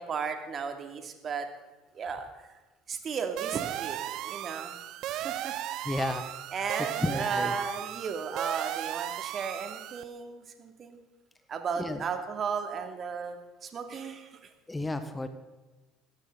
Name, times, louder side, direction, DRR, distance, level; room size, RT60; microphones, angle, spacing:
voice 1, 0.0-1.5 1.9-2.5 2.9-4.7 5.0-5.5 5.9-6.0 6.5-11.0 11.5-14.4, right 6 dB, 40° right, 5 dB, 2.7 m, -35 dB
sound 1, 3.4-10.0, right 13 dB, 60° right, 0.7 m, -36 dB
voice 2, 5.8-6.3 7.0-7.5 11.8-12.0 14.7-15.3, left 1 dB, 15° left, 9 dB, 1.6 m, -31 dB
20.5 x 16.5 x 4.1 m, 1.2 s
hypercardioid pair, 65°, 0 cm